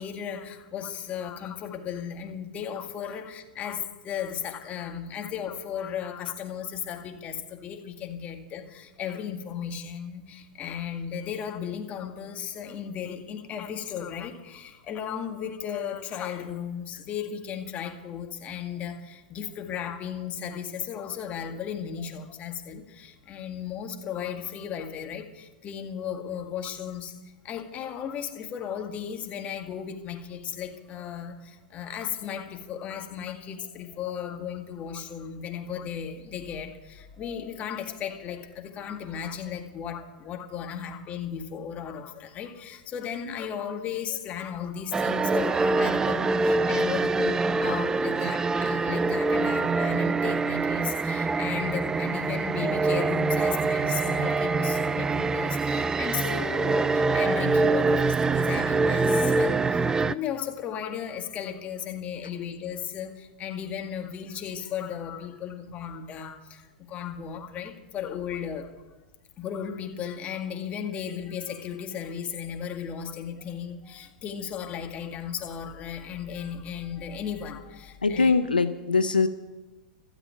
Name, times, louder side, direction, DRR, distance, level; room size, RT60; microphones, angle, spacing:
voice 1, 0.0-27.2 27.4-68.7 69.4-78.3, left 8 dB, 30° left, 5 dB, 1.9 m, -35 dB
sound 1, 44.9-60.1, right 3 dB, 15° right, 0.4 m, -25 dB
voice 2, 78.0-79.3, left 4 dB, 90° left, 11 dB, 0.7 m, -22 dB
13.5 x 8.1 x 9.0 m, 1.1 s
figure-of-eight pair, 100°, 5 cm